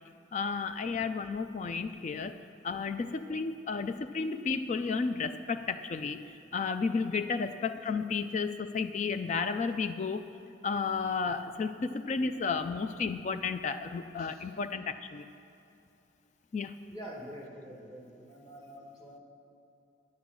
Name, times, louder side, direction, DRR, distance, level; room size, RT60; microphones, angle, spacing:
voice 1, 0.3-2.4 2.6-10.2 10.6-15.3 16.5-16.7, left 4 dB, 40° left, 10 dB, 0.3 m, -32 dB
voice 2, 3.1-3.4 7.0-7.2 14.2-14.4 16.9-19.2, equal, 20° left, -3 dB, 1.6 m, -47 dB
9.7 x 9.4 x 6.1 m, 2.7 s
head